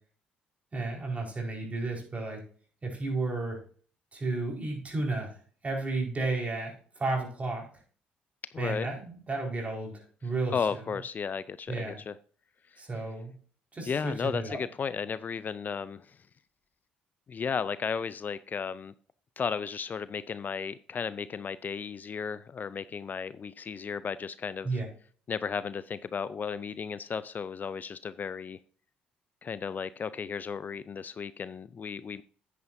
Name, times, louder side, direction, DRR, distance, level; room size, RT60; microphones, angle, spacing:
voice 1, 0.7-2.4 2.8-3.6 4.1-5.4 5.6-7.7 8.6-10.8 11.7-12.0 12.8-13.3 13.7-14.6 24.6-24.9, right 3 dB, 35° right, 4.6 m, -33 dB
voice 2, 8.5-8.9 10.5-12.1 13.9-16.2 17.3-18.9 19.4-24.7 25.3-28.6 29.4-32.2, left 6 dB, 40° left, 0.5 m, -34 dB
9.6 x 9.3 x 2.7 m
hypercardioid pair, 60°, 4 cm